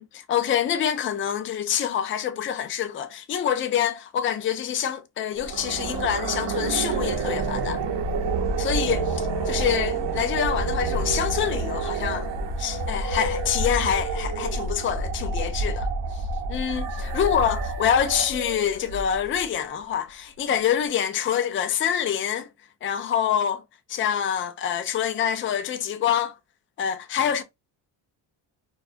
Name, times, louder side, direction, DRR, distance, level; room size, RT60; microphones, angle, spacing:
voice 1, 0.0-7.8 8.6-12.3 12.6-15.9 16.5-22.5 22.8-23.6 23.9-26.4 26.8-27.4, left 9 dB, 30° left, 0.3 m, -26 dB
sound 1, 5.3-19.4, right 3 dB, 60° right, 0.7 m, -28 dB
2.3 x 2.3 x 2.4 m
cardioid pair, 100°, 48 cm